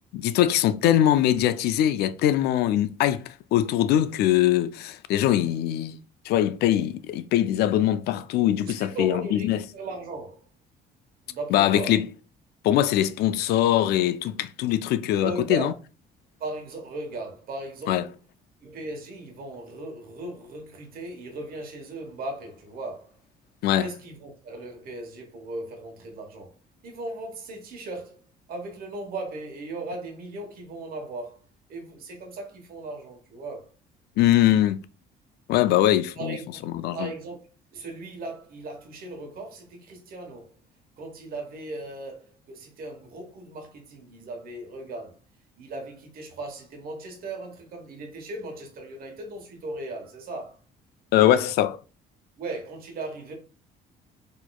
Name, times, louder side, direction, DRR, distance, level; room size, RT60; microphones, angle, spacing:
voice 1, 0.1-6.0 6.3-9.6 11.5-12.1 12.6-15.7 17.9-18.0 23.6-23.9 34.2-34.8 35.5-36.4 36.8-37.1 51.1-51.8, left 12 dB, 75° left, 0.4 m, -22 dB
voice 2, 8.6-10.5 11.3-12.0 15.1-15.8 16.4-18.2 18.6-23.1 23.8-26.5 26.8-28.2 28.5-31.4 31.7-33.7 36.2-37.4 37.7-40.5 41.0-45.2 45.6-50.6 52.4-53.3, right 2 dB, 60° right, 1.2 m, -37 dB
4.1 x 2.9 x 2.3 m
cardioid pair, 110°, 17 cm